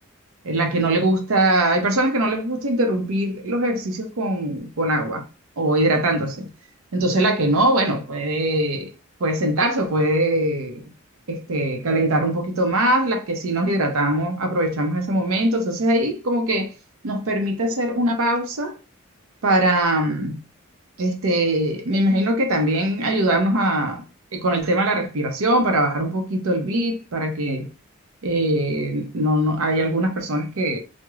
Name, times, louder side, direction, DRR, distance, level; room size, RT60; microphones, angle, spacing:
voice 1, 0.4-5.2 5.6-6.5 6.9-8.9 9.2-10.9 11.3-16.7 17.0-18.8 19.4-20.4 21.0-24.0 24.3-27.7 28.2-30.8, right 1 dB, 80° right, 0.6 m, -22 dB
2.3 x 2.1 x 3.0 m
head